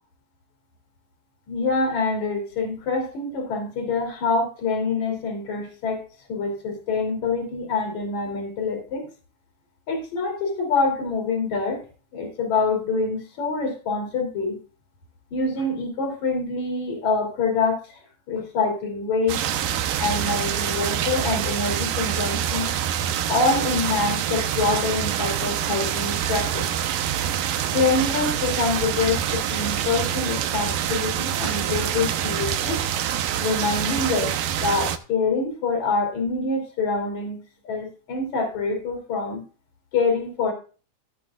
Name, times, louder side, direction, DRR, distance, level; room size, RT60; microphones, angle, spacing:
voice 1, 1.5-9.1 9.9-11.8 12.1-14.6 15.3-18.0 18.3-19.4 20.0-22.7 23.3-26.6 27.7-32.8 33.4-34.3 34.6-37.4 37.6-39.4 39.9-40.5, left 4 dB, 60° left, 4 dB, 4.3 m, -25 dB
sound 1, 19.3-35.0, right 10 dB, 85° right, 2.6 m, -26 dB
16.5 x 8.7 x 2.4 m, 0.35 s
omnidirectional pair, 3.8 m